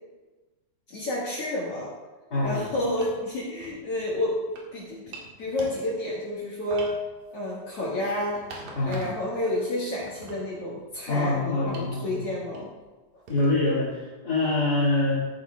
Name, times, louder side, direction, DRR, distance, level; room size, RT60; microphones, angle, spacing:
voice 1, 0.9-1.9 2.4-4.4 4.7-6.9 7.3-8.4 8.9-12.7, left 1 dB, 50° left, -6 dB, 2.1 m, -30 dB
voice 2, 2.3-2.7 8.7-9.1 11.1-12.3 13.3-15.3, left 2 dB, 30° left, -11 dB, 2.2 m, -25 dB
sound 1, 2.6-3.2 3.6-4.7 5.1-6.2 6.7-9.3 9.7-11.2 11.7-12.0 12.6-12.8 13.3-13.8, right 2 dB, 75° right, 3.2 m, -45 dB
13.5 x 9.3 x 2.3 m, 1.2 s
omnidirectional pair, 4.0 m